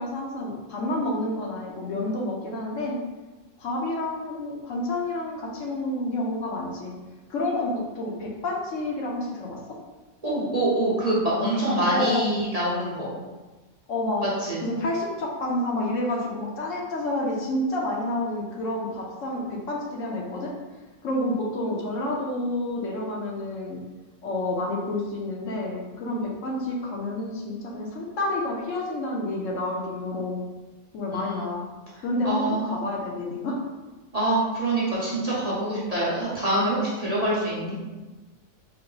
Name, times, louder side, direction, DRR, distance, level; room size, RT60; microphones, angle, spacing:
voice 1, 0.0-3.0 3.6-7.0 7.3-9.8 11.9-12.3 13.9-14.3 14.6-20.5 21.0-23.8 24.2-30.4 30.9-31.6 32.0-33.6, left 1 dB, 70° left, -2 dB, 1.0 m, -29 dB
voice 2, 10.2-13.1 14.4-14.6 31.2-31.3 32.2-32.7 34.1-37.7, right 1 dB, 35° right, -8 dB, 0.8 m, -25 dB
4.4 x 2.1 x 3.8 m, 1.2 s
omnidirectional pair, 1.5 m